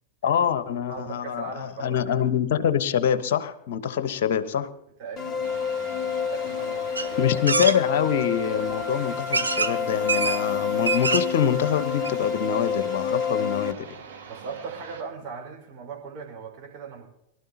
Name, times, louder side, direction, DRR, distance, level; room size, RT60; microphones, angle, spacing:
voice 1, 0.2-4.7 7.2-14.0, left 8 dB, 55° left, 14 dB, 1.0 m, -25 dB
voice 2, 0.9-2.2 5.0-7.5 14.3-17.1, right 5 dB, 40° right, -1 dB, 4.5 m, -39 dB
sound 1, 5.2-13.7, left 7 dB, 30° left, 0.8 m, -28 dB
sound 2, 5.4-15.0, right 6 dB, 65° right, 3.4 m, -44 dB
sound 3, 6.9-7.1 7.5-7.8 8.7-8.8 9.3-9.7 10.1-10.4 10.7-11.4 11.8-11.9 12.0-12.1, right 4 dB, 80° right, 0.9 m, -24 dB
24.0 x 13.0 x 2.8 m, 0.81 s
figure-of-eight pair, 90°, 0 cm